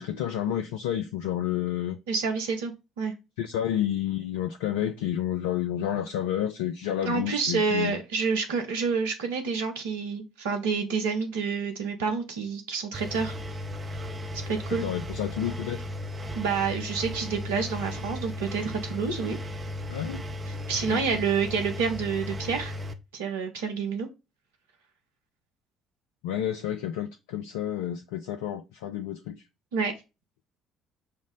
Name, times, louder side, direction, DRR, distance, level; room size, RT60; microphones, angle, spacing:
voice 1, 0.0-2.0 3.4-8.0 14.7-15.8 19.9-20.2 20.9-21.0 26.2-29.4, left 11 dB, 70° left, 0.3 m, -30 dB
voice 2, 2.1-3.1 7.0-13.4 14.5-14.9 16.3-19.4 20.5-22.8 23.1-24.1 29.7-29.9, right 5 dB, 75° right, 0.8 m, -28 dB
Engine, 12.9-22.9, left 1 dB, 30° right, 0.6 m, -36 dB
5.3 x 2.0 x 3.7 m
figure-of-eight pair, 50°, 0 cm